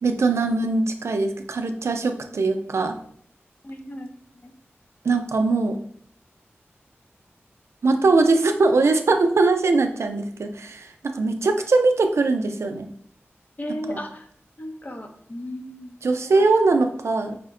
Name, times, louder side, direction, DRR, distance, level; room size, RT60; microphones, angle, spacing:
voice 1, 0.0-3.0 5.0-5.8 7.8-12.9 13.9-14.0 16.0-17.4, right 3 dB, 80° right, 6 dB, 0.4 m, -21 dB
voice 2, 3.6-4.2 4.4-4.6 13.6-14.3 14.6-16.0 16.2-16.5, left 1 dB, 35° left, 4 dB, 0.7 m, -35 dB
4.8 x 2.1 x 3.6 m, 0.63 s
wide cardioid pair, 50°, 5 cm